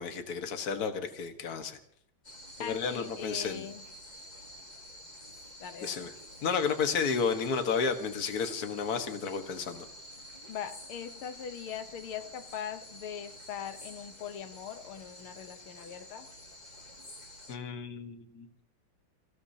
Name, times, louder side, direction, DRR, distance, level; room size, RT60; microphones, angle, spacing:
voice 1, 0.0-1.8 2.6-3.7 5.8-6.1 6.4-9.9 17.5-18.5, left 5 dB, 50° left, 6 dB, 1.8 m, -32 dB
sound 1, 2.2-17.6, left 1 dB, 20° left, 2.2 m, -49 dB
voice 2, 2.6-3.8 5.6-6.1 10.5-16.3, left 8 dB, 90° left, 8 dB, 1.9 m, -41 dB
29.5 x 16.5 x 2.8 m, 0.67 s
omnidirectional pair, 2.3 m